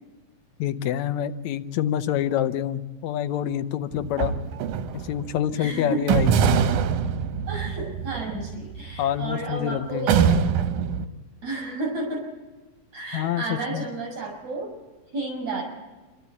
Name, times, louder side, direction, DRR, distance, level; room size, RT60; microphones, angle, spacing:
voice 1, 0.6-4.3 4.9-6.5 9.0-10.1 13.1-13.9, left 11 dB, 75° left, 11 dB, 2.0 m, -27 dB
sound 1, 3.9-5.3 6.1-9.5 10.1-11.1, right 7 dB, 85° right, 2.4 m, -24 dB
voice 2, 5.5-6.0 7.5-10.5 11.4-12.3 12.9-14.7 15.1-15.6, right 2 dB, 60° right, -1 dB, 8.3 m, -31 dB
28.0 x 12.5 x 8.3 m, 1.2 s
omnidirectional pair, 3.4 m